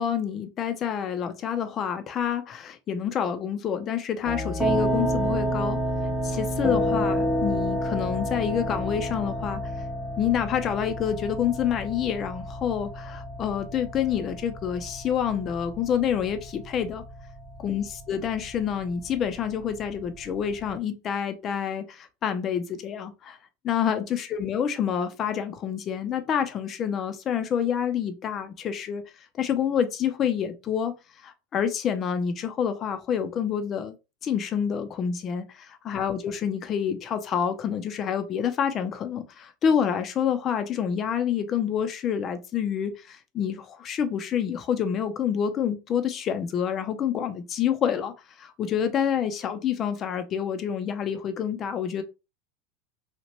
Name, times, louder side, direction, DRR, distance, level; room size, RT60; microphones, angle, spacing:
voice 1, 0.0-5.8 6.2-9.6 10.2-17.0 17.6-23.4 23.6-29.0 29.4-30.9 31.2-34.0 34.2-48.1 48.4-52.0, left 8 dB, 40° left, 0.6 m, -28 dB
sound 1, 4.2-20.7, equal, 5° right, 0.7 m, -30 dB
2.9 x 2.5 x 3.0 m
hypercardioid pair, 100°, 0 cm